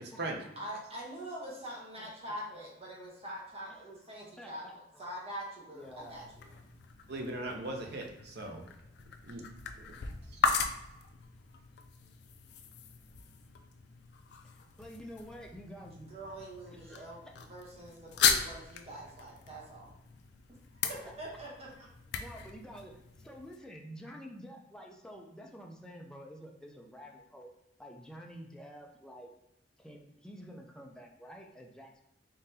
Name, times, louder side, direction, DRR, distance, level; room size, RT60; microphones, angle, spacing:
voice 1, 0.0-0.8 2.0-2.1 3.7-3.8 4.4-5.1 5.7-6.2 14.4-16.2 16.7-17.2 21.0-21.1 22.1-27.5 27.8-29.3 29.8-32.1, equal, 5° left, 0 dB, 0.5 m, -49 dB
voice 2, 0.6-6.5 16.1-19.9 20.7-21.7, right 1 dB, 35° right, -4 dB, 1.0 m, -44 dB
sound 1, 5.8-23.6, left 6 dB, 65° left, 0.4 m, -37 dB
voice 3, 7.1-8.6 9.2-9.4 9.8-9.9 10.3-10.4, right 2 dB, 60° right, 2 dB, 0.7 m, -39 dB
3.8 x 3.7 x 2.8 m, 0.86 s
head